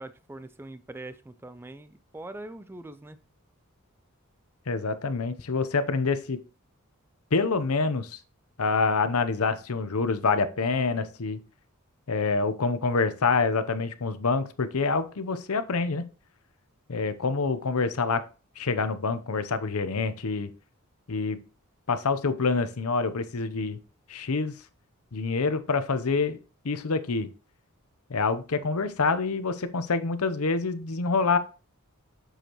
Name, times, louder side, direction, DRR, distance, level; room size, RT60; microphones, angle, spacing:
voice 1, 0.0-3.2, right 2 dB, 10° right, 0.3 m, -42 dB
voice 2, 4.7-6.4 7.3-8.2 8.6-11.4 12.1-16.0 16.9-18.2 18.6-20.5 21.1-21.4 21.9-23.8 24.1-24.5 25.1-26.4 26.6-27.3 28.1-31.4, left 4 dB, 85° left, 0.8 m, -26 dB
7.9 x 6.4 x 3.0 m
head